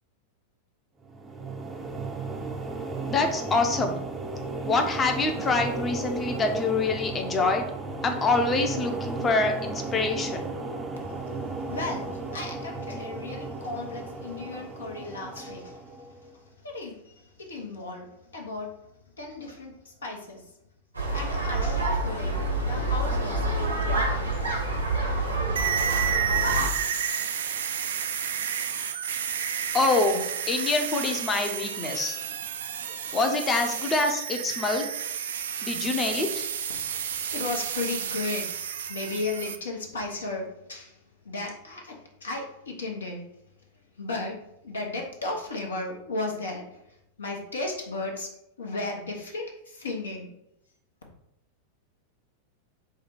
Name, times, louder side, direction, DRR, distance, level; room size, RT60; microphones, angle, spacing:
sound 1, 1.0-16.3, right 3 dB, 15° right, 0.6 m, -35 dB
voice 1, 3.1-4.0 4.6-7.7 8.0-10.5 29.7-32.2 33.1-34.9 35.6-36.5, left 3 dB, 20° left, 5 dB, 0.7 m, -25 dB
voice 2, 11.0-18.7 19.2-20.5 21.1-24.4 36.7-38.5 38.7-41.0 41.2-43.2 44.0-44.4 44.6-48.3 48.6-50.3, left 3 dB, 70° left, 1 dB, 1.0 m, -35 dB
sound 2, 20.9-26.7, right 2 dB, 85° right, 1.1 m, -27 dB
sound 3, 25.6-39.6, right 8 dB, 65° right, 0.4 m, -31 dB
4.7 x 2.4 x 4.6 m, 0.81 s
figure-of-eight pair, 90°, 0 cm